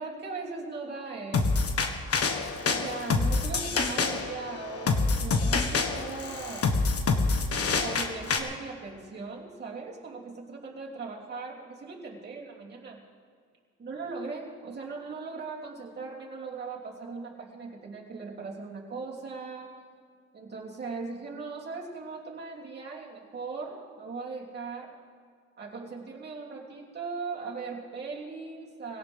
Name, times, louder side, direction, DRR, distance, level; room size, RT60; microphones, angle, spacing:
voice 1, 0.0-1.6 2.6-6.7 7.8-13.0 13.8-19.7 20.3-24.9 25.6-29.0, right 4 dB, 35° right, -4 dB, 3.1 m, -39 dB
sound 1, 1.3-8.4, left 4 dB, 50° left, 1.6 m, -27 dB
20.0 x 17.5 x 3.6 m, 2.1 s
cardioid pair, 90°, 30 cm